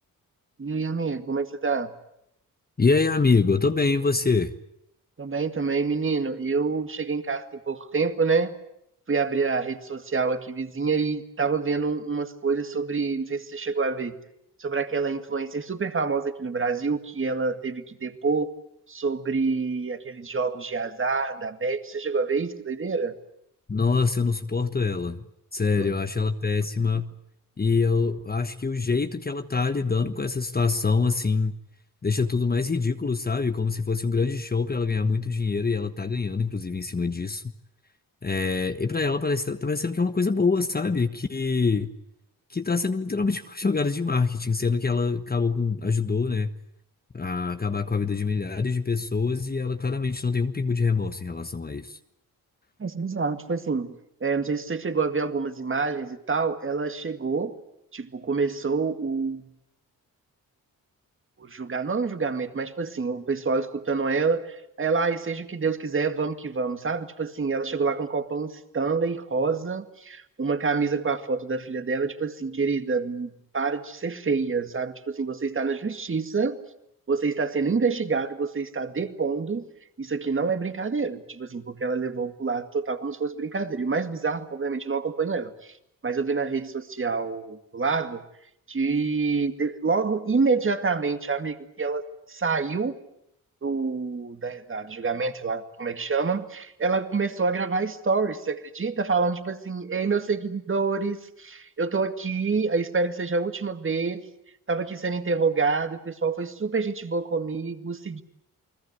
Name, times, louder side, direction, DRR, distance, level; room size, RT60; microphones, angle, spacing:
voice 1, 0.6-1.9 5.2-8.5 9.1-14.2 14.6-18.5 18.9-23.1 25.8-25.9 52.8-53.9 54.2-57.6 57.9-59.5 61.4-76.6 77.1-79.6 80.0-85.7 86.0-88.2 88.7-93.0 93.6-104.2 104.7-108.2, right 4 dB, 35° right, 9 dB, 2.1 m, -27 dB
voice 2, 2.8-4.5 23.7-25.2 25.5-27.1 27.6-31.6 32.0-37.4 38.2-41.9 42.5-46.5 47.1-52.0, left 4 dB, 25° left, 8 dB, 1.3 m, -25 dB
29.5 x 20.5 x 8.2 m, 0.76 s
cardioid pair, 90°, 35 cm